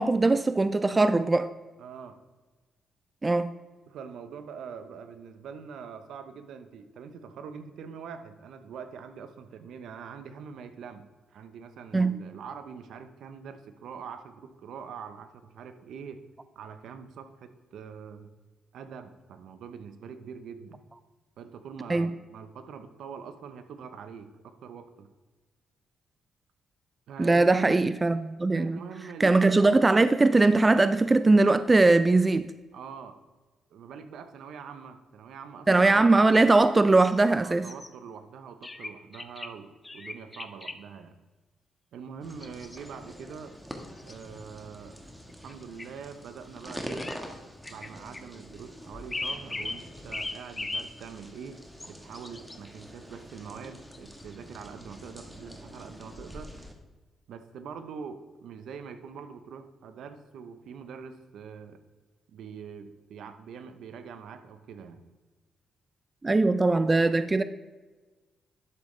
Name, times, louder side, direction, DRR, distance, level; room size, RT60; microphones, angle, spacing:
voice 1, 0.0-1.5 3.2-3.5 11.9-12.2 21.9-22.1 27.2-28.8 29.2-32.5 35.7-37.7 66.2-67.4, right 3 dB, 25° right, 13 dB, 0.4 m, -21 dB
voice 2, 1.8-2.2 3.9-16.2 16.5-18.3 18.7-20.8 21.4-25.1 27.1-27.8 28.5-29.5 32.7-33.1 33.7-36.1 37.4-41.1 41.9-43.5 44.0-45.0 45.4-47.1 47.6-51.6 51.9-56.7 57.3-61.8 62.3-65.0, right 6 dB, 75° right, 9 dB, 0.9 m, -44 dB
sound 1, 37.0-37.2 37.6-37.9 38.6-39.5 39.8-40.8 42.3-43.2 43.8-44.4 45.3-45.5 45.8-45.9 46.9-47.2 47.6-48.2 49.1-49.8 50.1-50.9 51.8-52.6 53.9-54.4, left 2 dB, 20° left, 0.7 m, -37 dB
sound 2, 42.2-56.7, equal, ahead, 1.4 m, -45 dB
11.0 x 7.2 x 3.3 m, 1.3 s
cardioid pair, 85°, 0 cm